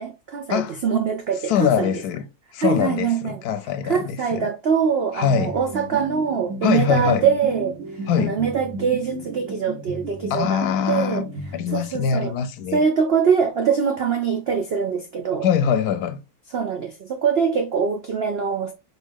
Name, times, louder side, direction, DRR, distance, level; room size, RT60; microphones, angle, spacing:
voice 1, 0.0-1.9 2.6-3.4 3.8-7.8 8.2-11.3 11.7-12.4 12.7-15.5 16.5-18.7, right 6 dB, 70° right, 0.5 m, -23 dB
voice 2, 1.5-2.3 2.5-4.5 5.1-5.5 6.6-7.2 8.1-8.4 10.3-12.8 15.4-16.2, left 8 dB, 70° left, 1.0 m, -23 dB
sound 1, 5.4-12.1, right 2 dB, 55° right, 1.6 m, -34 dB
3.9 x 3.6 x 3.5 m
omnidirectional pair, 1.8 m